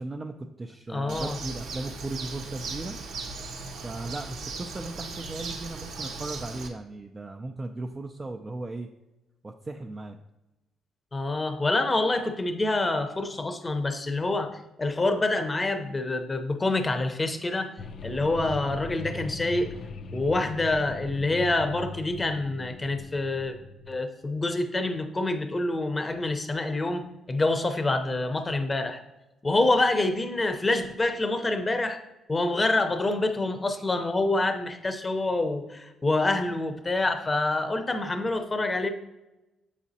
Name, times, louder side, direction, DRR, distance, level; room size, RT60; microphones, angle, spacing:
voice 1, 0.0-3.0 3.8-8.9 9.4-10.2, right 2 dB, 25° right, 2 dB, 0.4 m, -37 dB
voice 2, 0.9-1.4 11.1-17.7 18.0-19.7 20.1-23.6 23.9-27.0 27.3-29.0 29.4-32.0 32.3-38.9, left 2 dB, 25° left, 7 dB, 0.7 m, -26 dB
Bird, 1.1-6.7, right 3 dB, 85° right, 0.8 m, -37 dB
sound 1, 17.8-24.0, left 3 dB, 60° left, 0.4 m, -40 dB
7.2 x 4.9 x 2.8 m, 1.0 s
cardioid pair, 90°, 0 cm